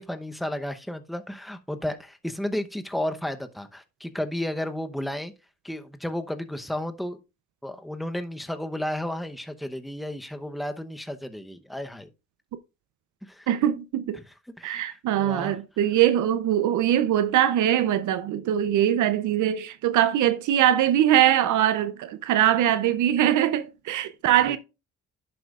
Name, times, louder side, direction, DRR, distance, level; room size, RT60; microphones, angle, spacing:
voice 1, 0.0-5.3 5.6-7.2 7.6-12.1 13.2-13.5 14.1-14.2 14.6-15.6 24.5-24.6, left 1 dB, ahead, 0.8 m, -33 dB
voice 2, 13.5-14.2 14.6-24.6, right 11 dB, 75° right, 0.7 m, -22 dB
10.5 x 7.8 x 2.4 m
cardioid pair, 90°, 30 cm